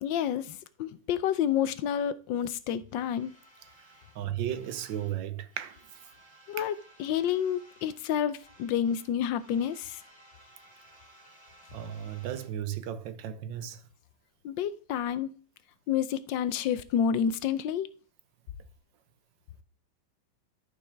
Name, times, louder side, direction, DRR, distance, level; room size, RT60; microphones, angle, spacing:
voice 1, 0.0-3.3 6.5-10.0 14.4-15.3 15.9-17.9, left 9 dB, 85° left, 1.4 m, -29 dB
sound 1, 2.9-5.2 5.5-8.1 8.3-12.5, right 1 dB, 15° right, 3.3 m, -58 dB
voice 2, 4.1-5.8 6.6-6.7 11.7-13.8, right 10 dB, 90° right, 1.5 m, -35 dB
12.5 x 5.5 x 3.4 m
omnidirectional pair, 2.0 m